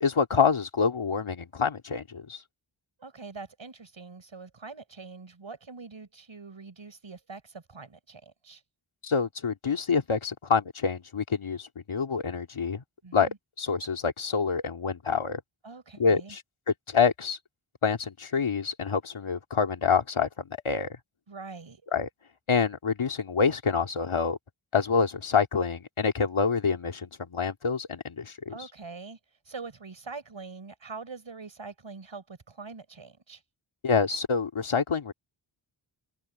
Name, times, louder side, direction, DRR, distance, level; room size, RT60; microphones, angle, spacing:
voice 1, 0.0-2.4 9.0-12.8 13.1-13.3 13.6-15.4 16.0-16.4 16.7-17.4 17.8-20.3 20.6-21.0 21.9-22.1 22.5-24.4 24.7-28.5 33.8-35.1, left 5 dB, 75° left, 2.5 m, -26 dB
voice 2, 3.0-8.6 13.0-13.4 15.6-16.4 21.3-21.8 28.5-33.4, right 4 dB, 65° right, 7.7 m, -44 dB
wide cardioid pair, 65°, 49 cm